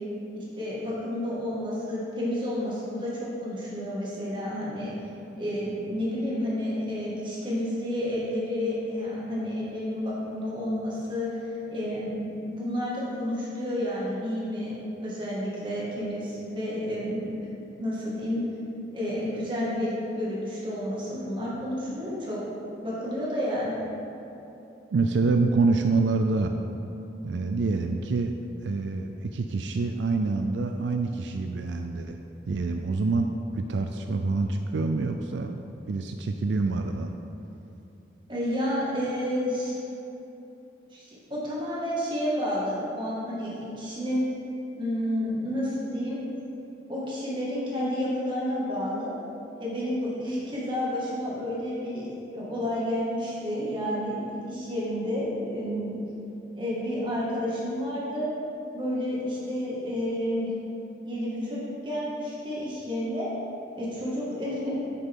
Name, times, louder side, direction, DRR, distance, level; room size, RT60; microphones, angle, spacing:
voice 1, 0.3-4.9 5.4-14.7 15.0-18.4 18.9-22.4 22.8-23.9 38.3-39.8 40.9-44.3 44.8-46.3 46.9-49.1 49.6-52.0 52.3-56.0 56.5-58.3 58.7-60.5 61.0-63.3 63.8-64.8, equal, 25° right, -7 dB, 1.9 m, -30 dB
voice 2, 24.9-26.5 27.2-28.3 28.6-32.2 32.5-37.1, right 3 dB, 80° right, 5 dB, 0.4 m, -26 dB
9.0 x 6.8 x 3.7 m, 2.9 s
head